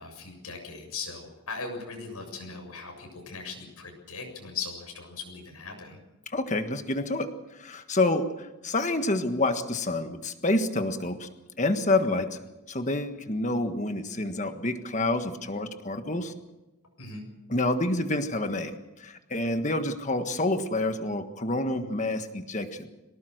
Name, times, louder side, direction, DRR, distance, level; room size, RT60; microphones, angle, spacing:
voice 1, 0.0-6.0 17.0-17.2, left 4 dB, 90° left, 3 dB, 7.5 m, -39 dB
voice 2, 6.3-7.3 7.6-11.3 11.6-12.4 12.7-16.3 17.5-22.9, left 2 dB, 30° left, 8 dB, 1.5 m, -28 dB
23.5 x 19.0 x 6.6 m, 1.0 s
head